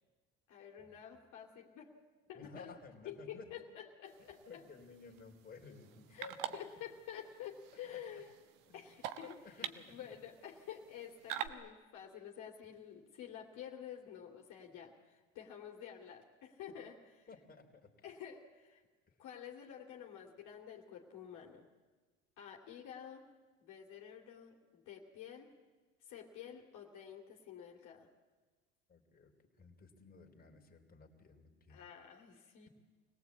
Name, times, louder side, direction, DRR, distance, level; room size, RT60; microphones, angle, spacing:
voice 1, 0.5-1.9 2.3-2.7 3.0-4.6 6.1-8.3 8.7-17.0 18.0-18.8 19.2-21.7 22.4-23.3 23.6-25.5 26.0-28.1 31.7-32.7, left 9 dB, 60° left, 0 dB, 2.8 m, -50 dB
voice 2, 2.3-3.5 4.2-6.6 7.8-8.0 8.7-8.8 9.4-10.0 17.3-18.0 19.1-19.2 28.9-31.8, left 4 dB, 25° left, 1 dB, 3.6 m, -56 dB
sound 1, 4.1-11.5, right 11 dB, 70° right, 1.3 m, -47 dB
25.0 x 18.0 x 8.5 m, 1.3 s
supercardioid pair, 80°, 33 cm